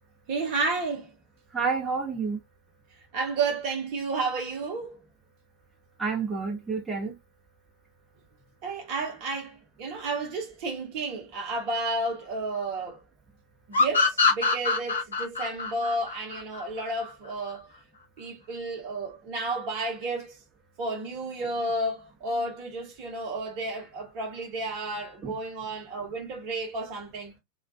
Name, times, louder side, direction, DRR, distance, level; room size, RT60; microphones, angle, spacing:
voice 1, 0.3-1.1 3.1-5.0 8.6-13.0 13.7-17.7 18.2-20.4 20.8-27.3, right 2 dB, 45° right, 1.0 m, -32 dB
voice 2, 1.5-2.4 6.0-7.1 25.2-25.3, right 5 dB, 10° right, 0.9 m, -29 dB
sound 1, 13.7-17.1, left 4 dB, 75° left, 0.7 m, -24 dB
2.4 x 2.3 x 2.3 m
figure-of-eight pair, 90°, 0 cm